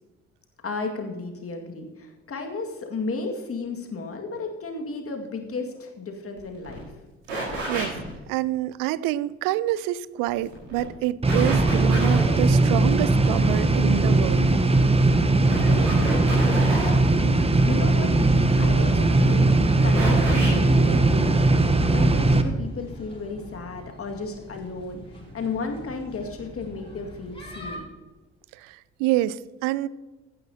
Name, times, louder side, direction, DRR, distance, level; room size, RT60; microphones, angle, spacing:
voice 1, 0.6-6.9 15.9-17.1 17.4-18.2 18.6-27.9, left 3 dB, 35° left, 3 dB, 2.1 m, -34 dB
sound 1, 6.4-6.5 6.6-6.8 7.3-8.1 10.3-10.8 11.3-12.4 14.5-14.9 15.5-17.1 18.8-19.2 19.9-20.6, right 2 dB, 80° right, 4.6 m, -30 dB
voice 2, 8.3-14.5 28.5-29.9, right 15 dB, 60° right, 19 dB, 0.5 m, -27 dB
sound 2, 11.2-22.4, right 2 dB, 15° right, 1.1 m, -19 dB
sound 3, 13.0-27.8, equal, 15° left, 4.0 m, -42 dB
16.0 x 10.5 x 2.9 m, 1.2 s
figure-of-eight pair, 50°, 37 cm